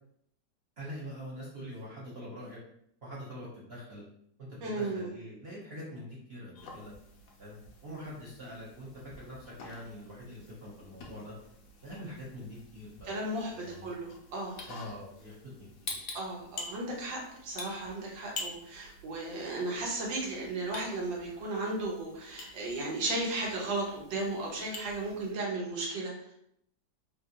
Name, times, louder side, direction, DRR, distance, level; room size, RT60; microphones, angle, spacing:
voice 1, 0.8-2.6 3.0-4.0 4.4-6.9 7.4-8.9 9.2-11.3 11.8-13.1 13.5-14.0 14.7-15.4 15.8-15.9, equal, 50° right, -7 dB, 0.7 m, -44 dB
voice 2, 4.6-5.1 13.0-14.6 16.1-26.3, right 2 dB, 90° right, -2 dB, 1.6 m, -35 dB
sound 1, 6.5-25.3, left 3 dB, 65° left, 0.9 m, -48 dB
3.6 x 2.5 x 2.7 m, 0.72 s
omnidirectional pair, 2.0 m